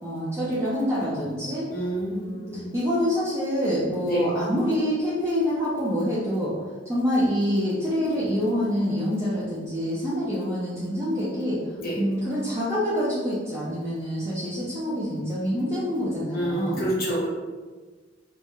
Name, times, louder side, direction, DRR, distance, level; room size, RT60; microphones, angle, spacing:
voice 1, 0.0-1.6 2.1-6.5 6.9-11.6 12.0-16.9, equal, 15° right, -9 dB, 0.4 m, -26 dB
voice 2, 1.7-2.7 4.1-4.2 11.8-12.0 16.3-17.3, right 1 dB, 50° left, -5 dB, 0.8 m, -28 dB
2.3 x 2.0 x 2.9 m, 1.4 s
head